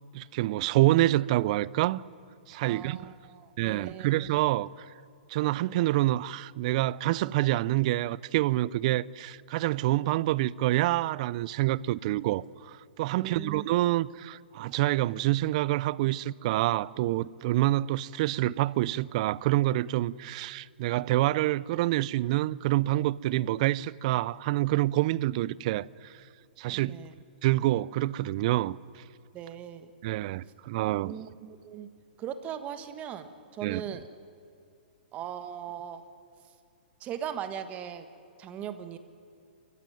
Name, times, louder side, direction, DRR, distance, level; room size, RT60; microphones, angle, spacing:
voice 1, 0.1-2.0 2.5-3.0 3.6-4.7 5.3-25.9 26.6-27.0 27.4-28.8 30.0-31.1 33.6-33.8, right 16 dB, 45° right, 0.5 m, -27 dB
voice 2, 2.6-4.1 13.1-13.7 26.7-27.2 29.3-29.9 31.0-31.9 32.2-34.0 35.1-36.0 37.0-38.1 38.4-39.0, right 9 dB, 25° right, 1.6 m, -39 dB
29.0 x 15.0 x 9.3 m
hypercardioid pair, 140°, 5 cm